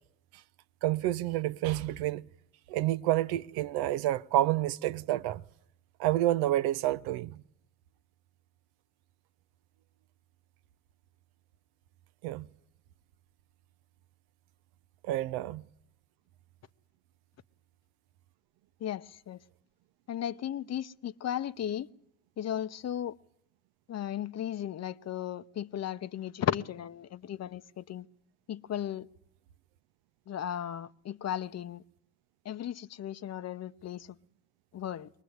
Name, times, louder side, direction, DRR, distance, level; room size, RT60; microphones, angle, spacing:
voice 1, 0.8-2.2 2.7-5.4 6.0-7.4 12.2-12.5 15.0-15.6, right 14 dB, 65° right, 0.8 m, -29 dB
voice 2, 18.8-19.4 20.1-21.9 22.4-23.2 23.9-28.1 28.5-29.1 30.3-31.8 32.4-34.2 34.7-35.1, left 10 dB, 40° left, 0.9 m, -35 dB
23.0 x 19.5 x 8.1 m
hypercardioid pair, 70°, 41 cm